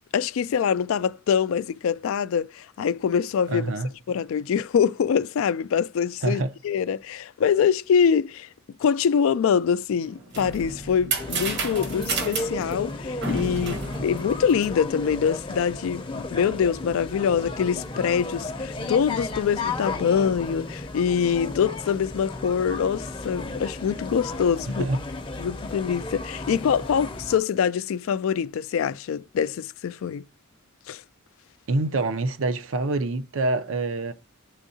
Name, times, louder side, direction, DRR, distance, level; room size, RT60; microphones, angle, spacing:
voice 1, 0.1-3.7 4.1-8.5 8.8-24.9 25.4-30.3 30.9-31.0, left 7 dB, 75° left, 0.3 m, -24 dB
voice 2, 3.5-3.9 6.2-6.5 24.8-25.0 31.7-34.1, right 2 dB, 70° right, 0.6 m, -26 dB
sound 1, 10.0-15.0, right 4 dB, 55° right, 1.0 m, -31 dB
sound 2, 11.2-27.4, left 2 dB, 25° left, 0.6 m, -34 dB
9.9 x 3.6 x 2.7 m
head